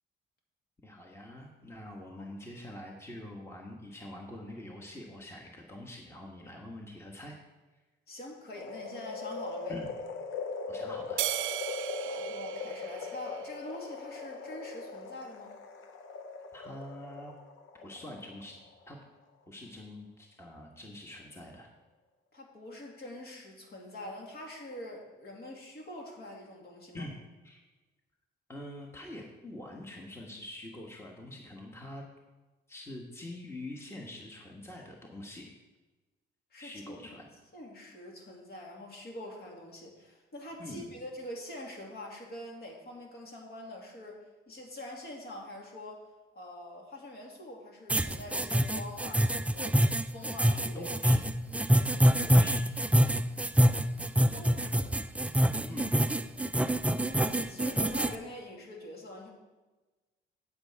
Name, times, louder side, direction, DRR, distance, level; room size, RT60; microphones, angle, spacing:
voice 1, 0.8-7.4 9.7-9.9 10.7-11.2 16.5-17.3 17.8-18.6 18.9-19.0 19.5-21.7 26.9-27.1 27.4-27.6 28.5-32.0 32.7-35.5 36.6-37.3 40.6-40.9 50.7-51.1 52.2-52.6 55.7-55.9, left 1 dB, 15° left, 0 dB, 1.3 m, -45 dB
voice 2, 8.1-9.8 12.0-15.5 22.3-27.0 36.5-37.0 37.5-46.1 46.3-49.8 50.1-50.9 52.0-52.4 54.3-54.9 55.4-55.9 57.0-59.3, left 1 dB, 55° left, -1 dB, 2.5 m, -45 dB
sound 1, 8.5-18.8 19.2-19.3, left 4 dB, 85° left, 0.9 m, -40 dB
sound 2, 11.2-13.8, right 14 dB, 80° right, 0.4 m, -36 dB
sound 3, 47.9-58.1, equal, 5° right, 0.4 m, -25 dB
8.3 x 7.9 x 4.6 m, 1.2 s
cardioid pair, 90°, 20 cm